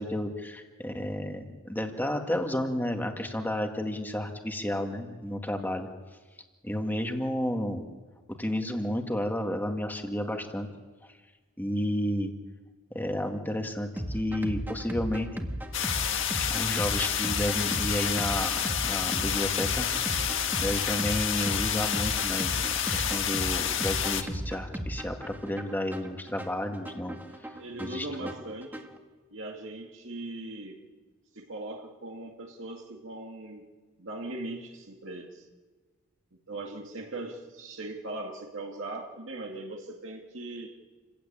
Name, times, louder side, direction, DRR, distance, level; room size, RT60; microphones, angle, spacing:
voice 1, 0.0-5.9 6.6-7.9 8.4-10.7 11.0-11.1 11.6-12.3 12.9-15.3 16.4-22.5 22.9-27.2 27.8-28.3, left 1 dB, 10° left, 4 dB, 2.0 m, -32 dB
sound 1, 14.0-29.0, equal, 10° right, 1.9 m, -36 dB
sound 2, 15.7-24.2, left 9 dB, 65° left, 1.7 m, -29 dB
voice 2, 27.6-28.9 29.3-30.8 31.3-33.7 34.0-35.5 36.5-40.7, right 2 dB, 65° right, 1 dB, 2.3 m, -39 dB
29.0 x 16.0 x 8.8 m, 1.4 s
head